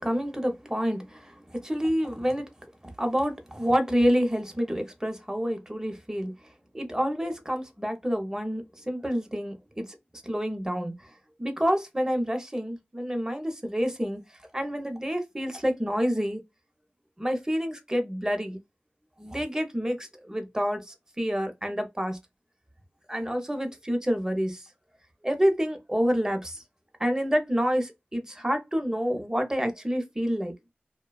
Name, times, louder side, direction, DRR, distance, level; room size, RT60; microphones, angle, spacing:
voice 1, 0.0-2.4 3.0-6.3 6.7-9.9 10.2-10.9 11.4-14.2 14.5-16.4 17.2-18.6 19.2-20.8 21.2-22.2 23.1-24.6 25.2-26.6 27.0-30.5, equal, 15° right, 0.7 m, -28 dB
2.5 x 2.2 x 2.3 m
wide cardioid pair, 55°, 4 cm